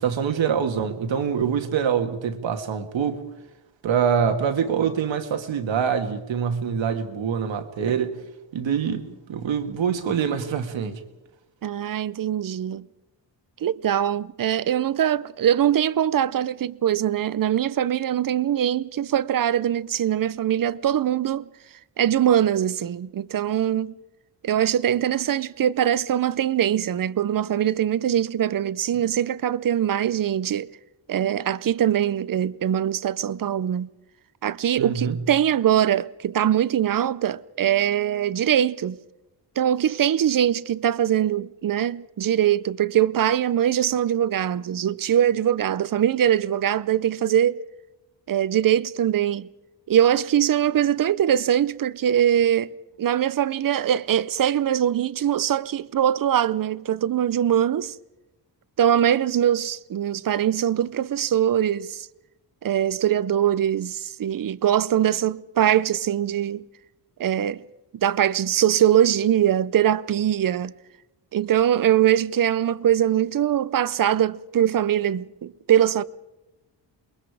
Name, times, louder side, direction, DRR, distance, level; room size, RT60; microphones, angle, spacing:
voice 1, 0.0-3.2 3.8-8.2 8.5-11.0 34.8-35.2, right 7 dB, 85° right, 2.0 m, -25 dB
voice 2, 11.6-12.8 13.6-21.5 22.0-23.9 24.4-30.7 31.1-33.9 34.4-39.0 39.6-47.6 48.3-49.5 49.9-52.7 53.0-58.0 58.8-62.1 62.6-66.6 67.2-67.6 67.9-70.7 71.3-76.0, right 10 dB, 50° right, 0.7 m, -22 dB
28.5 x 22.0 x 4.9 m
cardioid pair, 100°, 44 cm